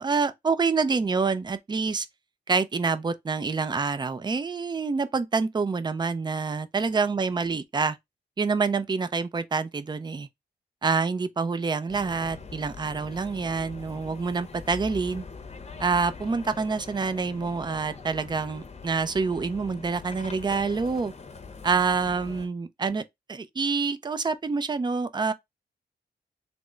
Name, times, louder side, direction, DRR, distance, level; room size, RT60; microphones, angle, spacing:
voice 1, 0.0-2.1 2.5-8.0 8.4-10.3 10.8-15.2 15.8-21.1 21.6-23.0 23.3-25.3, right 4 dB, 25° right, 0.4 m, -27 dB
sound 1, 11.9-22.5, left 4 dB, 35° left, 0.7 m, -43 dB
3.4 x 2.0 x 3.7 m
cardioid pair, 80°, 18 cm